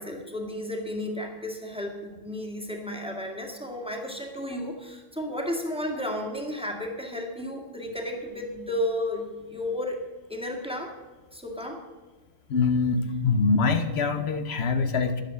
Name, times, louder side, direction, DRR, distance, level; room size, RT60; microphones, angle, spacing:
voice 1, 0.0-10.0 10.3-10.9 11.3-11.8, left 1 dB, 5° right, 1 dB, 1.8 m, -33 dB
voice 2, 12.5-15.2, left 4 dB, 75° left, 9 dB, 1.1 m, -24 dB
11.5 x 9.1 x 7.6 m, 1.2 s
omnidirectional pair, 1.1 m